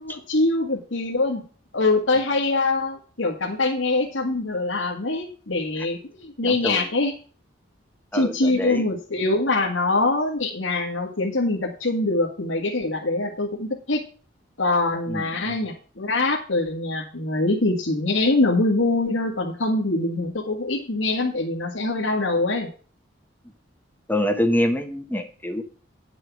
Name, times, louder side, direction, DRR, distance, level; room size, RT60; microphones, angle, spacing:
voice 1, 0.0-1.4 1.7-7.1 8.1-14.0 14.6-22.7, left 2 dB, 90° left, -1 dB, 1.9 m, -24 dB
voice 2, 6.4-6.8 8.1-8.8 15.1-15.6 24.1-25.6, left 1 dB, 10° left, 6 dB, 1.0 m, -25 dB
11.0 x 6.3 x 6.0 m, 0.40 s
head